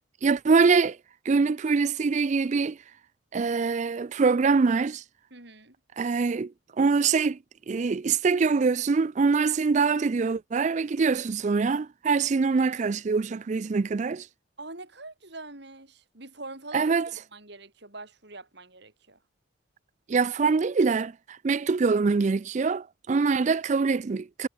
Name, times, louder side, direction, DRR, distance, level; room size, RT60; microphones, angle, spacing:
voice 1, 0.2-1.0 1.3-2.8 3.3-5.0 6.0-6.5 6.8-7.4 7.7-14.3 16.7-17.1 20.1-21.1 21.4-24.5, right 4 dB, 35° right, 0.4 m, -24 dB
voice 2, 5.3-5.7 12.4-13.0 14.6-19.2 23.1-23.3, right 2 dB, 55° right, 4.7 m, -44 dB
head